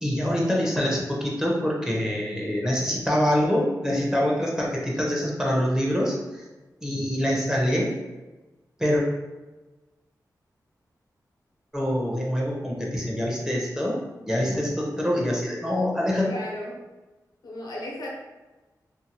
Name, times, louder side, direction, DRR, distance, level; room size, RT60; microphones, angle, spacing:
voice 1, 0.0-6.4 6.8-7.9 8.8-9.0 11.7-14.0 14.3-16.3, equal, 10° right, -3 dB, 0.7 m, -25 dB
voice 2, 16.2-16.8 17.4-18.1, left 1 dB, 90° left, -3 dB, 0.8 m, -35 dB
2.7 x 2.5 x 2.8 m, 1.1 s
wide cardioid pair, 105°, 7 cm